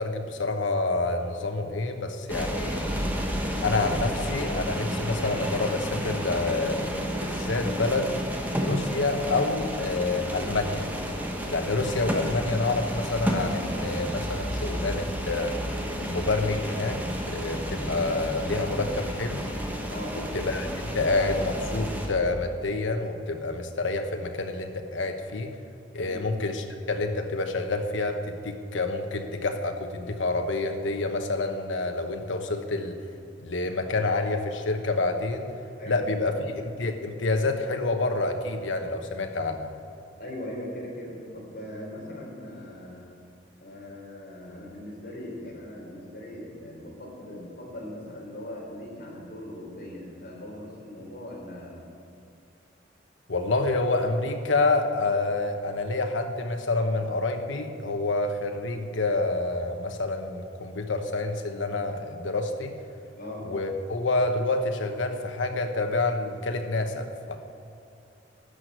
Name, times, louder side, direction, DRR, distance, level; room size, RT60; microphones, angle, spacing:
voice 1, 0.0-2.8 3.6-8.1 8.6-10.9 11.5-15.6 16.0-17.0 17.3-19.4 20.3-25.5 25.9-33.0 33.4-35.5 35.9-39.7 53.3-62.8 63.4-67.4, left 3 dB, 85° left, 5 dB, 1.1 m, -28 dB
sound 1, 2.3-22.1, equal, 10° right, 1.3 m, -31 dB
voice 2, 35.8-36.5 40.2-43.1 43.6-51.8 63.2-63.4, left 1 dB, 55° left, -3 dB, 3.7 m, -40 dB
13.0 x 6.4 x 9.2 m, 2.6 s
head